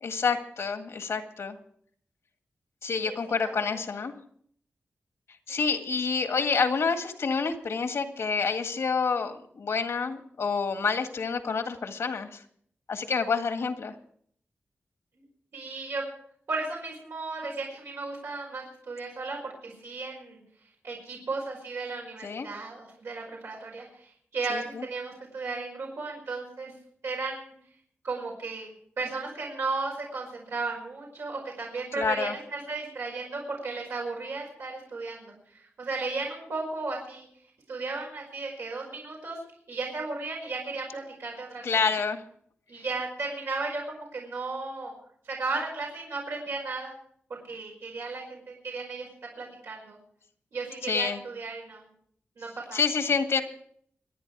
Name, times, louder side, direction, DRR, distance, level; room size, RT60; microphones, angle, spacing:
voice 1, 0.0-1.6 2.8-4.1 5.5-12.4 12.9-13.9 22.2-22.5 24.5-24.8 32.0-32.3 41.6-42.2 50.8-51.2 52.7-53.4, left 5 dB, 80° left, 7 dB, 1.8 m, -28 dB
voice 2, 15.5-16.0 16.5-20.4 20.8-26.7 27.0-27.5 28.0-37.3 37.7-39.4 39.7-41.8 42.7-44.9 45.3-46.9 47.3-49.1 49.4-50.0 50.5-51.8 52.4-52.8, right 3 dB, 90° right, -3 dB, 5.3 m, -35 dB
26.5 x 9.7 x 4.8 m, 0.63 s
wide cardioid pair, 130°, 5 cm